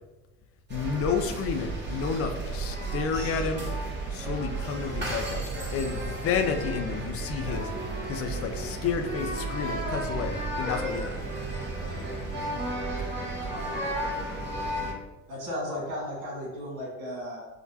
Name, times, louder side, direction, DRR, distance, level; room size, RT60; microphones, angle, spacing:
voice 1, 0.7-3.6 4.1-5.4 5.7-7.7 8.1-11.1, left 6 dB, 35° left, 5 dB, 0.5 m, -30 dB
sound 1, 0.7-14.9, right 2 dB, 25° right, 1.2 m, -33 dB
voice 2, 13.5-14.0 15.3-17.5, left 1 dB, 65° right, -2 dB, 1.3 m, -35 dB
4.8 x 2.1 x 2.8 m, 1.1 s
hypercardioid pair, 65°, 39 cm